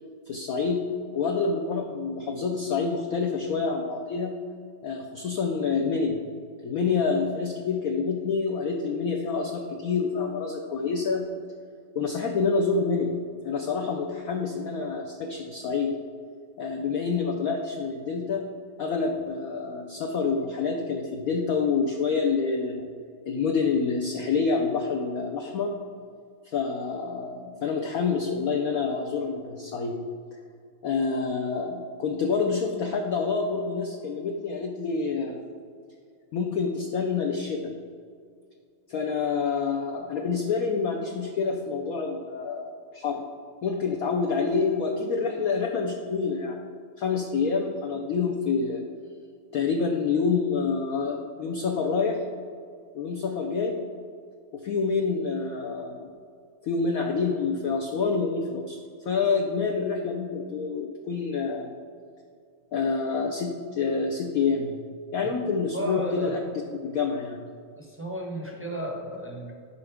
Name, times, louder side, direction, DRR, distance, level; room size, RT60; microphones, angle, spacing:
voice 1, 0.3-0.8 1.1-4.4 4.8-6.2 6.6-11.3 11.9-13.1 13.4-15.9 16.6-18.5 18.8-22.8 23.3-25.8 26.4-30.0 30.8-35.4 36.3-37.7 38.9-43.2 43.6-46.6 47.0-48.8 49.5-52.2 52.9-53.8 54.5-56.1 56.6-58.8 59.0-61.7 62.7-64.8 65.1-66.4 66.8-67.4, left 5 dB, 65° left, 2 dB, 0.9 m, -27 dB
voice 2, 65.7-66.4 67.8-69.5, right 1 dB, 15° right, -1 dB, 0.5 m, -33 dB
13.0 x 5.5 x 3.5 m, 2.2 s
omnidirectional pair, 2.1 m